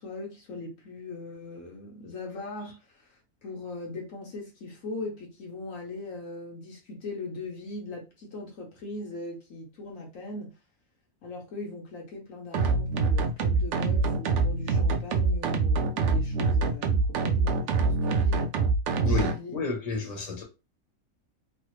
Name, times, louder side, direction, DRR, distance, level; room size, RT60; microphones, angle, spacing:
voice 1, 0.0-10.5 11.2-18.5 19.3-19.6, left 2 dB, 65° left, 1.2 m, -40 dB
sound 1, 12.5-19.3, right 3 dB, 65° right, 0.7 m, -25 dB
voice 2, 19.0-20.4, left 4 dB, 30° left, 1.0 m, -31 dB
3.2 x 2.3 x 3.0 m
omnidirectional pair, 1.6 m